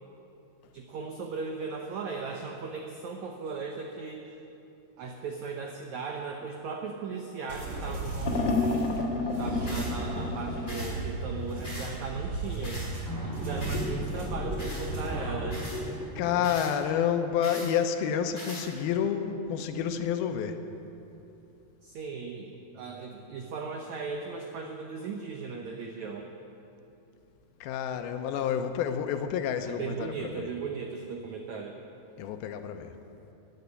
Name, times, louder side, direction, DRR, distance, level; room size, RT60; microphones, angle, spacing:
voice 1, 0.7-4.2 5.0-8.7 9.4-12.8 13.2-15.6 21.8-26.3 29.7-31.8, right 5 dB, 85° right, 3 dB, 1.6 m, -37 dB
sound 1, 7.5-15.5, right 2 dB, 25° right, 3.0 m, -35 dB
sound 2, 8.2-10.9 13.3-16.4, left 3 dB, 50° left, 1.3 m, -32 dB
Airgun Pellets, 9.7-9.9 10.7-10.9 11.6-11.9 12.6-12.9 13.6-13.9 14.6-14.9 15.5-15.8 16.4-16.7 17.4-17.7 18.4-18.7, left 1 dB, 10° left, 3.7 m, -41 dB
voice 2, 16.2-20.6 27.6-30.5 32.2-32.9, left 8 dB, 80° left, 8 dB, 2.5 m, -29 dB
15.0 x 9.2 x 9.6 m, 2.9 s
omnidirectional pair, 4.6 m